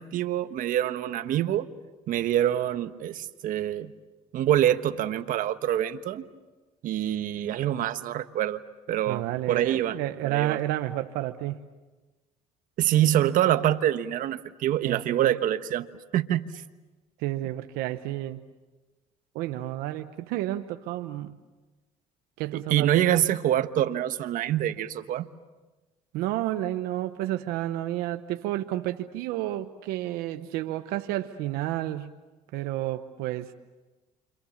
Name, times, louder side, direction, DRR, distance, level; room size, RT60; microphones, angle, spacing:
voice 1, 0.0-1.7 2.1-3.9 4.3-6.3 6.8-8.6 8.9-10.0 10.2-10.6 12.8-15.9 16.1-16.5 22.5-25.3, right 12 dB, 65° right, 10 dB, 1.2 m, -25 dB
voice 2, 9.1-11.6 14.8-15.3 17.2-18.4 19.3-21.4 22.4-23.2 26.1-32.1 32.5-33.5, right 14 dB, 85° right, 8 dB, 1.0 m, -31 dB
29.5 x 26.0 x 7.2 m, 1.2 s
cardioid pair, 95°, 15 cm